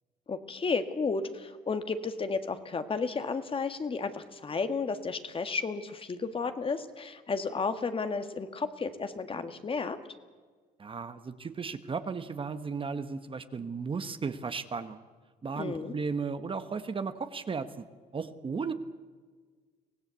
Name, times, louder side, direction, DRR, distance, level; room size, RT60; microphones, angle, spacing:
voice 1, 0.3-10.0 15.6-15.9, left 4 dB, 30° left, 9 dB, 1.7 m, -33 dB
voice 2, 10.8-15.0 15.4-17.8 18.1-18.7, right 5 dB, 30° right, 10 dB, 1.3 m, -35 dB
24.0 x 17.0 x 8.3 m, 1.5 s
cardioid pair, 100°, 17 cm